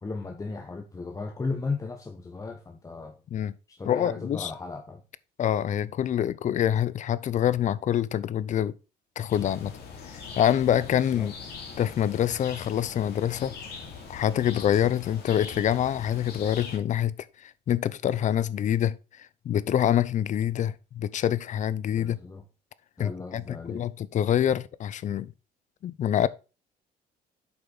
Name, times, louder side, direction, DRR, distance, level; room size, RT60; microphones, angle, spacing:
voice 1, 0.0-3.2 3.7-5.0 10.9-11.3 21.9-22.4 23.0-23.9, left 3 dB, 20° left, 1.0 m, -35 dB
voice 2, 3.9-4.5 5.4-8.7 9.2-9.7 10.4-11.3 11.8-13.5 14.1-22.2 23.0-25.3 25.8-26.3, left 10 dB, 45° left, 0.6 m, -26 dB
sound 1, 9.3-16.8, left 5 dB, 70° left, 2.7 m, -42 dB
8.1 x 5.4 x 3.9 m
cardioid pair, 110°, 17 cm